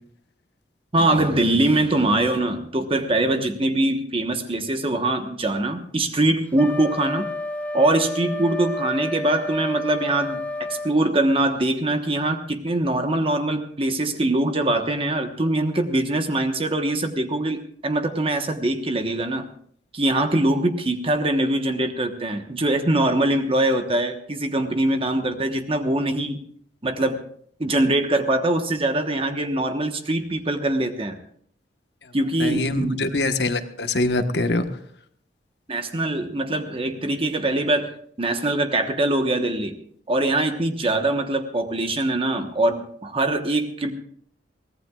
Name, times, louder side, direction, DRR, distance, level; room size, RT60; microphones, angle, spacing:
voice 1, 0.9-7.3 7.7-19.4 19.9-26.4 26.8-27.2 27.6-31.2 32.1-33.1 35.7-37.9 38.2-39.8 40.1-43.9, right 1 dB, 35° right, 6 dB, 1.2 m, -23 dB
Wind instrument woodwind instrument, 6.5-11.0, left 1 dB, 10° left, 0.8 m, -30 dB
voice 2, 32.4-34.6, left 2 dB, 70° left, 7 dB, 1.3 m, -23 dB
23.5 x 18.0 x 2.4 m, 0.62 s
head